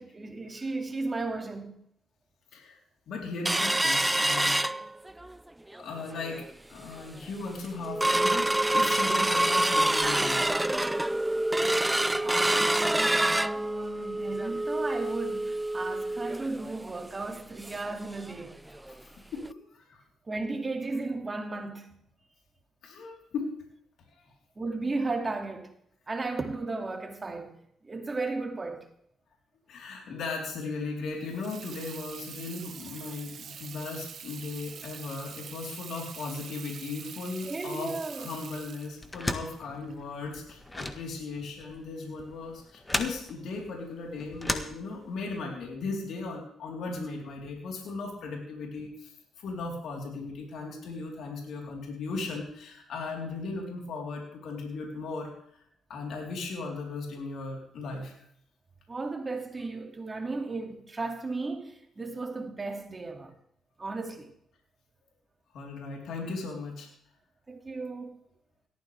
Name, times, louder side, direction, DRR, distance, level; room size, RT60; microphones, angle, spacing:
voice 1, 0.0-1.8 12.2-18.6 20.3-21.9 24.6-25.7 26.1-27.6 27.8-28.9 37.4-38.3 58.9-63.3 63.8-64.3 67.5-68.2, right 3 dB, 25° right, 2.6 m, -35 dB
voice 2, 3.1-4.5 5.8-10.5 14.8-15.0 18.7-20.0 22.8-23.5 24.1-24.3 29.7-55.3 55.9-58.2 65.5-66.9, left 3 dB, 70° left, 4.1 m, -37 dB
sound 1, 3.4-5.3 5.7-5.8 6.2-6.5 7.0-7.1 7.4-18.0 18.3-18.4 18.7-18.9 19.4-19.5, right 1 dB, 10° right, 0.4 m, -27 dB
Water tap faucet / Sink (filling or washing), 31.2-40.7, right 7 dB, 60° right, 1.3 m, -45 dB
sound 2, 39.0-45.4, left 1 dB, 15° left, 1.6 m, -36 dB
18.0 x 13.5 x 3.6 m
cardioid pair, 90°, 0 cm